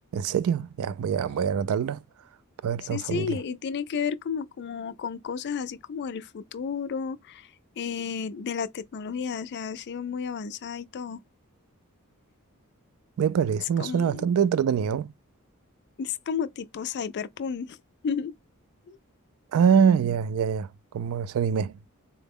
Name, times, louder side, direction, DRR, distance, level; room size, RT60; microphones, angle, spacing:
voice 1, 0.1-2.0 2.6-3.4 13.2-15.1 19.5-20.7 20.9-21.8, right 7 dB, 65° right, 0.3 m, -24 dB
voice 2, 2.8-7.5 7.8-11.2 13.8-14.3 16.0-17.8 18.0-18.3 18.9-19.0, left 6 dB, 50° left, 0.4 m, -32 dB
3.8 x 2.1 x 3.5 m
head